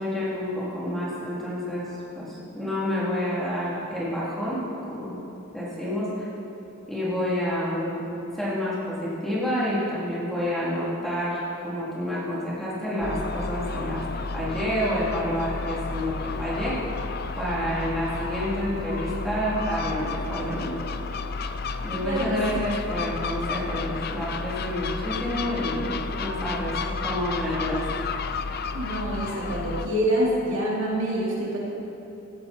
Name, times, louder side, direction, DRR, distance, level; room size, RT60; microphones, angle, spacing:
voice 1, 0.0-1.9 2.1-5.2 5.5-6.3 6.9-8.1 8.4-14.0 14.3-16.8 17.4-20.7 21.8-26.8 27.0-27.8, equal, ahead, -9 dB, 3.3 m, -29 dB
Gull seagull, 13.0-29.9, left 4 dB, 45° left, 0.5 m, -32 dB
voice 2, 22.0-22.4 28.7-31.6, equal, 65° right, -4 dB, 2.9 m, -26 dB
16.5 x 13.0 x 4.5 m, 3.0 s
head